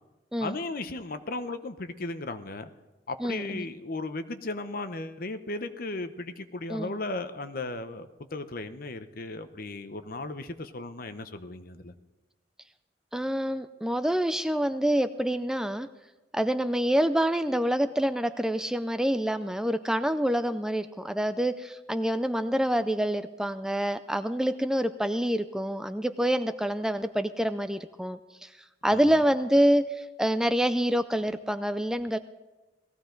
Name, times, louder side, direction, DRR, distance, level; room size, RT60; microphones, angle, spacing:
voice 1, 0.4-2.7 3.1-11.9 28.9-29.1, left 2 dB, 50° left, 10 dB, 0.8 m, -36 dB
voice 2, 3.2-3.7 6.7-6.9 13.1-15.9 16.3-28.5 28.8-32.2, equal, 5° right, 10 dB, 0.4 m, -27 dB
18.5 x 15.0 x 3.9 m, 1.1 s
head